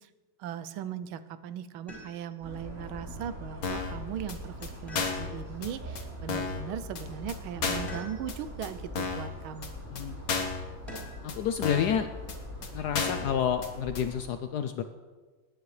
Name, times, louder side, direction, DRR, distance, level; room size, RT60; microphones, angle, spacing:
voice 1, 0.4-9.7, right 9 dB, 90° right, 13 dB, 1.5 m, -38 dB
sound 1, 1.9-2.5 4.9-5.7 7.9-8.6 10.9-11.4 13.1-13.7, equal, 10° left, 4.5 m, -47 dB
sound 2, 2.4-14.2, equal, 5° right, 4.4 m, -42 dB
sound 3, 3.6-4.0 4.3-4.4 4.6-4.7 5.0-5.3 5.6-5.7 6.0-6.1 6.3-6.6 7.0-7.1 7.3-7.4 7.6-7.9 8.3-8.4 8.6-8.7 9.0-9.3 9.6-9.7 10.0-10.1 10.3-10.6 11.0-11.1 11.3-11.4 11.6-12.0 12.3-12.4 12.6-12.7 12.9-13.3 13.6-13.7 14.0-14.1, left 5 dB, 50° left, 1.5 m, -32 dB
voice 2, 11.2-12.1 12.7-14.8, left 8 dB, 75° left, 9 dB, 0.9 m, -29 dB
21.0 x 9.9 x 3.2 m, 1.4 s
omnidirectional pair, 2.2 m